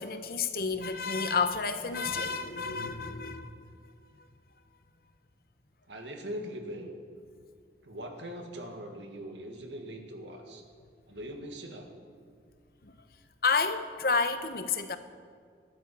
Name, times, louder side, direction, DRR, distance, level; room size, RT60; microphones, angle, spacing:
voice 1, 0.0-3.6 12.8-12.9 13.4-15.0, left 4 dB, 55° left, 9 dB, 0.9 m, -30 dB
voice 2, 5.9-6.9 7.8-10.6 11.1-11.9, equal, 90° right, 3 dB, 1.9 m, -41 dB
22.0 x 12.5 x 4.4 m, 2.1 s
head